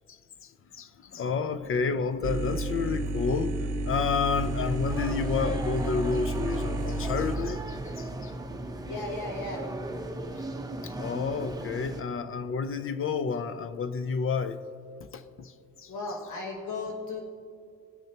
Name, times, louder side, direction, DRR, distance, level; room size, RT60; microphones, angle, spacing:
voice 1, 0.1-8.3 10.8-14.6 15.1-15.5 15.8-15.9, left 5 dB, 45° left, 11 dB, 0.6 m, -30 dB
sound 1, 2.2-7.4, right 2 dB, 60° right, 0.9 m, -31 dB
sound 2, 4.3-12.0, right 1 dB, 10° right, 0.8 m, -37 dB
voice 2, 8.9-9.7 15.9-17.2, left 3 dB, 75° left, -1 dB, 1.3 m, -35 dB
18.5 x 6.3 x 2.9 m, 2.3 s
cardioid pair, 90°, 30 cm